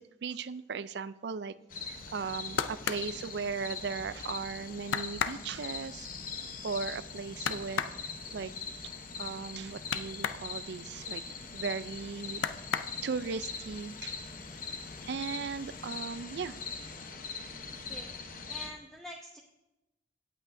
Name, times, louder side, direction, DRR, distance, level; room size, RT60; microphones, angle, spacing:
voice 1, 0.0-6.1 6.6-8.5 9.2-11.2 11.5-12.5 13.0-14.2 15.1-16.6, right 5 dB, 65° right, 16 dB, 0.4 m, -37 dB
sound 1, 1.7-18.7, left 5 dB, 45° left, 0.9 m, -42 dB
sound 2, 2.1-4.1 4.5-4.6 4.9-10.5 10.8-11.9 12.3-13.4 13.8-14.4 14.7-15.4 15.8-15.9, left 7 dB, 85° left, 0.5 m, -36 dB
voice 2, 17.9-19.4, equal, 5° left, 1 dB, 0.6 m, -47 dB
17.0 x 8.4 x 2.6 m, 0.97 s
head